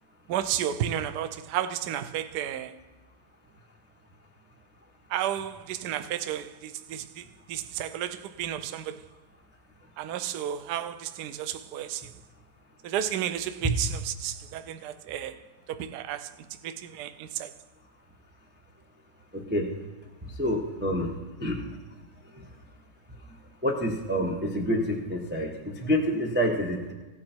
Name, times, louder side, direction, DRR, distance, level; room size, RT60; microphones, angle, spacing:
voice 1, 0.3-2.7 5.1-7.2 7.5-9.0 10.0-12.0 12.8-15.4 15.7-16.3 16.6-17.5, right 10 dB, 70° right, 1.0 m, -32 dB
voice 2, 19.3-19.7 20.2-21.1 21.4-21.7 22.3-22.5 23.6-26.9, equal, 10° right, 0.8 m, -28 dB
16.0 x 8.5 x 4.4 m
omnidirectional pair, 2.2 m